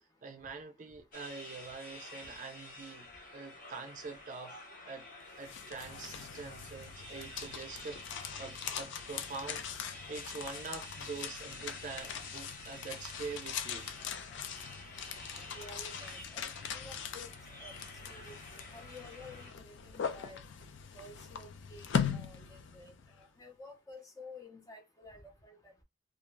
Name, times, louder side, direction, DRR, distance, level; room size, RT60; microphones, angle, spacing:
voice 1, 0.2-4.6 4.8-5.1 5.4-8.0 8.4-13.9, right 4 dB, 40° right, 0.4 m, -45 dB
sound 1, 1.1-19.5, left 2 dB, 45° left, 0.9 m, -50 dB
sound 2, 5.2-23.2, left 7 dB, 70° left, 0.4 m, -41 dB
voice 2, 15.5-17.3 17.6-17.8 18.1-20.4 21.0-25.8, left 2 dB, 20° left, 0.6 m, -52 dB
2.4 x 2.3 x 3.1 m
head